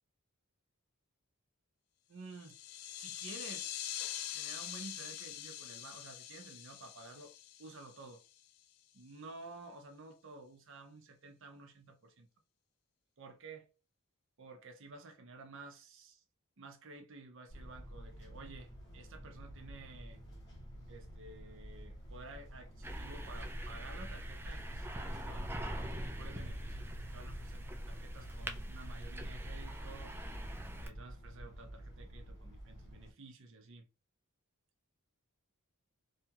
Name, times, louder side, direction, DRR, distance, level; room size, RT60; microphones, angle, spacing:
voice 1, 2.1-2.6 3.0-3.8 4.3-7.3 7.6-8.2 8.9-12.3 13.2-13.7 14.4-16.2 16.6-20.2 20.9-30.2 30.8-33.9, right 3 dB, 60° right, 0.6 m, -52 dB
sound 1, 2.3-8.4, left 11 dB, 75° left, 0.4 m, -44 dB
sound 2, 17.5-33.1, equal, 55° left, 1.3 m, -50 dB
sound 3, 22.8-30.9, equal, 10° right, 0.3 m, -43 dB
2.8 x 2.3 x 2.8 m
head